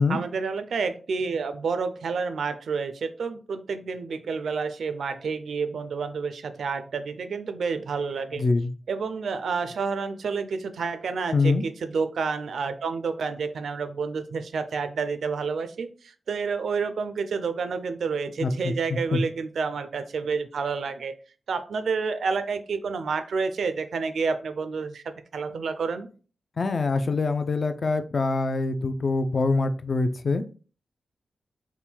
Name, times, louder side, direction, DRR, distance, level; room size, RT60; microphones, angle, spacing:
voice 1, 0.1-8.4 8.9-15.9 16.3-21.1 21.5-26.1, right 5 dB, 90° right, 10 dB, 0.4 m, -29 dB
voice 2, 8.4-8.7 11.3-11.6 18.4-19.2 26.6-30.4, left 3 dB, 50° left, 9 dB, 0.4 m, -24 dB
3.6 x 2.2 x 4.4 m, 0.38 s
wide cardioid pair, 95°, 0 cm